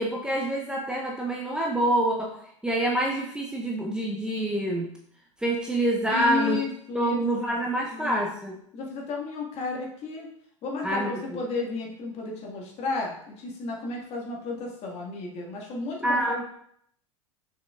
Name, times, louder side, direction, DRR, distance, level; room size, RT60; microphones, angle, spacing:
voice 1, 0.0-2.4 2.6-4.9 5.4-6.6 6.9-8.6 10.8-11.1 16.0-16.4, right 1 dB, 5° right, -1 dB, 0.8 m, -26 dB
voice 2, 6.1-7.2 7.9-8.2 8.7-10.3 10.6-16.2, left 3 dB, 40° left, -1 dB, 2.0 m, -33 dB
6.6 x 5.8 x 2.5 m, 0.68 s
figure-of-eight pair, 85°, 17 cm